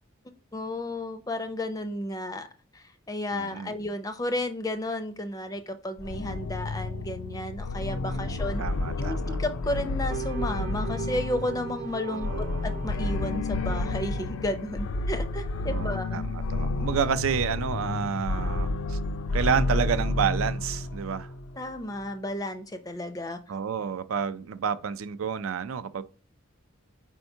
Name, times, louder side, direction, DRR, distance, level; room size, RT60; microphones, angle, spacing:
voice 1, 0.5-2.5 2.7-8.6 9.0-12.3 12.6-16.2 21.6-23.4, left 1 dB, 15° left, 0.4 m, -33 dB
voice 2, 3.3-3.7 8.1-9.4 12.1-12.7 15.7-19.0 19.3-21.3 23.5-26.0, right 7 dB, 80° right, 0.4 m, -30 dB
sound 1, 6.0-21.7, left 2 dB, 90° left, 0.5 m, -30 dB
sound 2, 10.1-14.7, right 5 dB, 40° right, 0.7 m, -39 dB
4.5 x 4.4 x 2.7 m
head